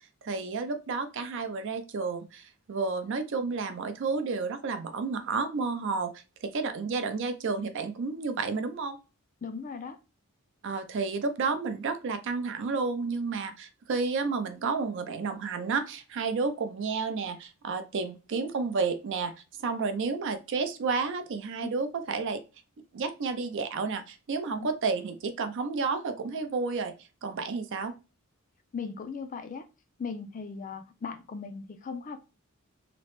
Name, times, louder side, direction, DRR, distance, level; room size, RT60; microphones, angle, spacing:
voice 1, 0.2-6.1 6.4-9.0 10.6-19.3 19.6-22.4 22.9-26.9 27.2-27.9, right 4 dB, 60° right, 0.4 m, -31 dB
voice 2, 9.4-10.0 24.5-24.7 28.7-29.7 30.0-32.2, left 5 dB, 35° left, 0.3 m, -38 dB
2.9 x 2.0 x 2.9 m
head